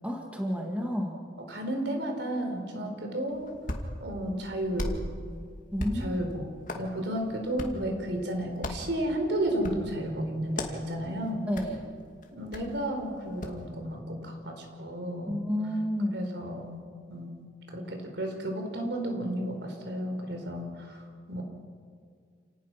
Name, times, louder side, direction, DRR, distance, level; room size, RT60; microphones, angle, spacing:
voice 1, 0.0-1.2 2.8-2.9 5.7-6.2 11.5-11.9 15.3-16.2, equal, 5° right, 0 dB, 2.2 m, -31 dB
voice 2, 1.4-3.5 4.0-5.1 5.9-11.4 12.3-15.4 16.1-16.8 17.1-21.4, right 1 dB, 70° right, 3 dB, 4.2 m, -33 dB
Hands, 3.3-13.6, left 1 dB, 45° left, 2.3 m, -40 dB
29.0 x 18.5 x 6.0 m, 2.1 s
head